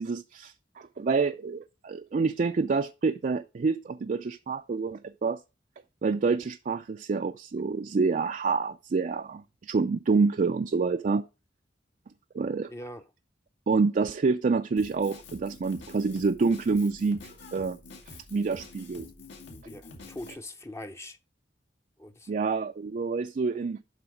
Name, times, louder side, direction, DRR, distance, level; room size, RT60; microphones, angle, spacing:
voice 1, 0.0-5.4 6.0-11.2 12.3-12.7 13.7-17.2 17.5-17.8 18.3-19.1 22.3-23.8, right 4 dB, 45° right, 0.4 m, -27 dB
voice 2, 12.7-13.0 19.6-21.2 22.0-22.3, left 1 dB, 15° left, 0.6 m, -42 dB
Drum kit, 14.8-20.3, left 2 dB, 75° left, 2.0 m, -47 dB
11.0 x 4.0 x 4.8 m
head